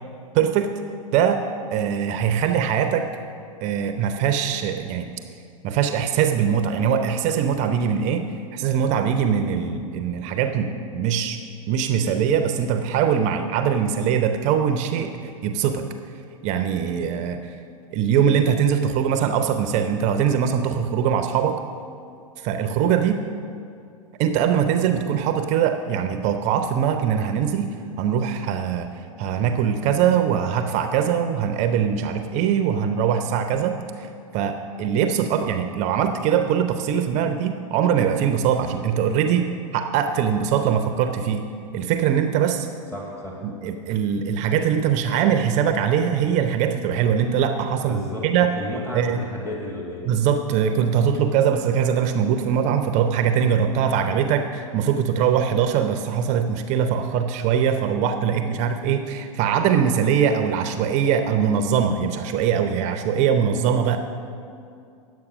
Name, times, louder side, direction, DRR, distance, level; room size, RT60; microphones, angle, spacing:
voice 1, 0.3-0.7 1.1-1.4 1.7-3.1 3.6-5.1 5.6-11.4 11.7-15.9 16.4-17.6 17.9-21.6 22.4-23.2 24.2-41.5 41.7-42.7 43.4-48.5 48.9-49.2 50.0-64.0, right 8 dB, 40° right, 7 dB, 0.6 m, -22 dB
voice 2, 42.9-43.4 47.8-50.1, left 1 dB, 10° left, -3 dB, 1.8 m, -33 dB
9.9 x 7.6 x 6.0 m, 2.4 s
hypercardioid pair, 110°, 18 cm